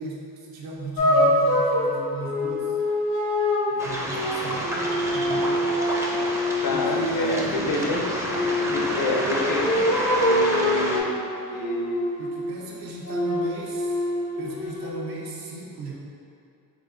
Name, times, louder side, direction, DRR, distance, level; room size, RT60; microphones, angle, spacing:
voice 1, 0.0-2.8 3.7-5.7 6.7-7.6 12.2-14.1 14.4-15.9, right 3 dB, 75° right, -4 dB, 0.8 m, -35 dB
sound 1, 1.0-7.0 8.2-12.5 13.0-14.9, left 1 dB, 80° left, 1.1 m, -25 dB
Waves surf, 3.8-11.0, equal, 10° right, 0.4 m, -29 dB
voice 2, 6.6-12.0, left 3 dB, 60° left, 0 dB, 0.6 m, -29 dB
3.9 x 2.6 x 2.6 m, 2.5 s
supercardioid pair, 70°, 37 cm